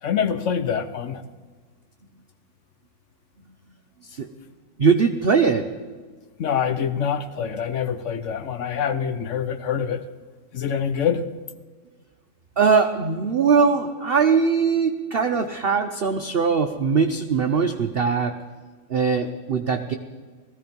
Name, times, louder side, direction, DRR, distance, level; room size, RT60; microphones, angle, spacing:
voice 1, 0.0-1.2 6.4-10.1 10.5-11.3, left 7 dB, 55° left, 11 dB, 0.8 m, -25 dB
voice 2, 4.8-5.7 12.6-18.3 18.9-19.9, right 5 dB, 60° right, 6 dB, 0.6 m, -21 dB
18.5 x 14.5 x 5.3 m, 1.5 s
omnidirectional pair, 2.0 m